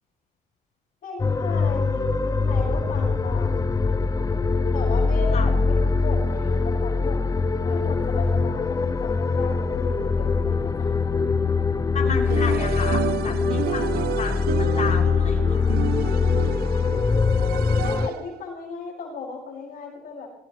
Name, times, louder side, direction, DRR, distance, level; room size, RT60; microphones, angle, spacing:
voice 1, 1.0-3.7 4.7-7.2 7.6-11.0 17.8-20.3, left 4 dB, 55° left, -3 dB, 6.4 m, -36 dB
sound 1, 1.2-18.1, left 4 dB, 20° left, 0.7 m, -23 dB
voice 2, 11.9-14.5 14.7-15.7, left 5 dB, 40° left, -2 dB, 7.2 m, -32 dB
sound 2, 12.3-18.4, right 10 dB, 65° right, 0.9 m, -31 dB
21.0 x 19.5 x 3.3 m, 0.81 s
cardioid pair, 110°, 17 cm